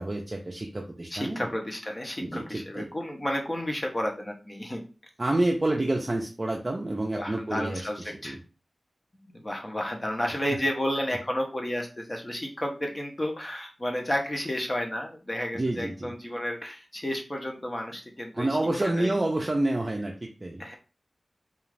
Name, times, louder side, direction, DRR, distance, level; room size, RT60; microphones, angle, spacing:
voice 1, 0.0-1.5 2.2-2.9 5.2-7.9 8.2-8.4 15.5-16.1 18.3-20.7, right 2 dB, 35° right, 0 dB, 0.4 m, -28 dB
voice 2, 1.1-4.8 7.1-8.4 9.1-18.6 19.0-19.1 20.6-20.7, left 1 dB, 30° left, 2 dB, 0.6 m, -32 dB
2.4 x 2.3 x 3.2 m, 0.34 s
wide cardioid pair, 65°, 0 cm